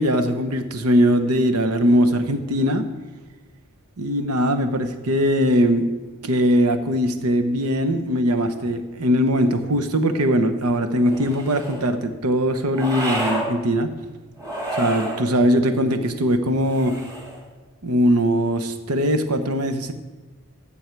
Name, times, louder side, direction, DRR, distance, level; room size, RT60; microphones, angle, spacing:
voice 1, 0.0-2.8 4.0-5.9 6.2-13.9 14.8-17.0 17.8-19.9, equal, 80° right, 8 dB, 0.9 m, -20 dB
sound 1, 11.0-11.8 12.7-13.5 14.4-15.2 16.6-17.4, right 1 dB, 15° right, 2.1 m, -29 dB
15.0 x 7.1 x 4.6 m, 1.2 s
head